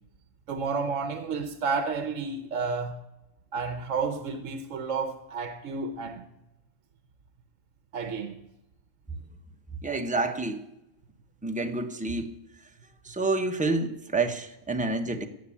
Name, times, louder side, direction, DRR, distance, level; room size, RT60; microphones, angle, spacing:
voice 1, 0.5-2.9 3.5-6.2 7.9-8.4, right 4 dB, 70° right, 1.3 m, -31 dB
voice 2, 9.8-10.6 11.4-12.3 12.6-12.7 13.0-15.3, right 3 dB, 5° right, 1.0 m, -28 dB
17.5 x 6.9 x 8.5 m
omnidirectional pair, 1.4 m